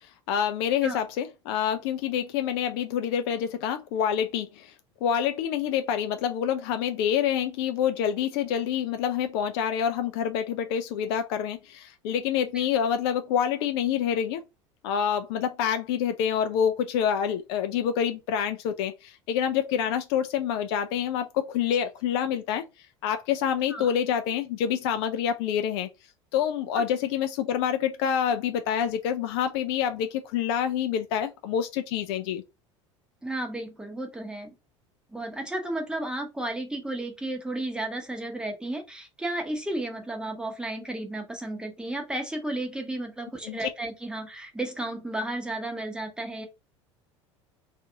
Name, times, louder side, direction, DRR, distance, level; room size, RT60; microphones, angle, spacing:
voice 1, 0.3-4.7 5.0-14.4 14.8-22.6 23.0-25.9 26.3-32.4 43.4-43.6, left 8 dB, 55° left, 0.4 m, -27 dB
voice 2, 33.2-34.5 35.1-46.5, right 1 dB, 5° right, 0.8 m, -33 dB
2.5 x 2.4 x 2.6 m
figure-of-eight pair, 70°, 16 cm